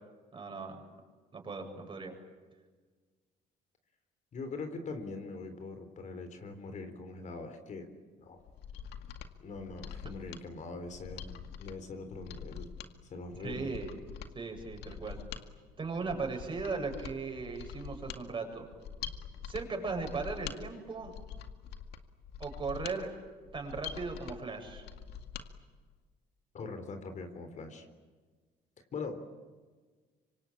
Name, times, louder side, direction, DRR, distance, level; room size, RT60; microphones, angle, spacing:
voice 1, 0.3-0.8 1.3-2.2 13.4-13.9 14.3-15.2 15.8-18.7 19.4-21.1 22.4-23.1 23.5-24.9, right 4 dB, 30° right, 3 dB, 7.7 m, -37 dB
voice 2, 4.3-7.9 8.2-8.4 9.4-12.7 13.1-13.7 26.5-27.9 28.9-29.2, left 3 dB, 45° left, 8 dB, 3.8 m, -42 dB
Mechanisms, 8.4-25.5 25.8-25.9, left 8 dB, 80° left, 2.1 m, -45 dB
25.5 x 25.5 x 8.8 m, 1.4 s
cardioid pair, 110°, 17 cm